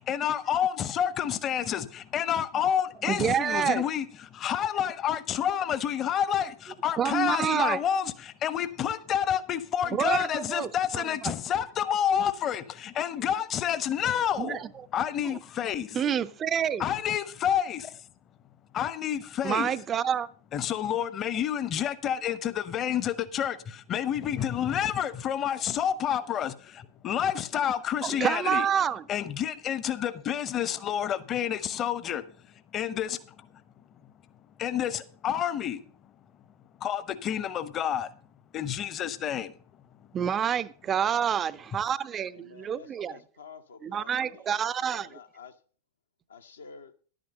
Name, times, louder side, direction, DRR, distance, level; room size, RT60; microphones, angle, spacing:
voice 1, 0.1-14.6 14.9-16.0 16.8-18.0 18.7-19.7 20.5-28.7 29.1-32.2 32.7-33.2 34.6-35.8 36.8-38.1 38.5-39.5, left 9 dB, 30° left, 0.9 m, -29 dB
voice 2, 3.0-3.8 7.0-7.8 9.9-11.3 14.4-14.7 15.2-15.4 15.9-16.8 19.4-20.3 28.0-29.0 40.1-43.2 43.8-45.1, right 8 dB, 25° right, 0.5 m, -28 dB
voice 3, 42.3-45.6 46.3-46.9, left 5 dB, 70° left, 1.0 m, -50 dB
11.0 x 9.0 x 5.3 m
figure-of-eight pair, 90°, 0 cm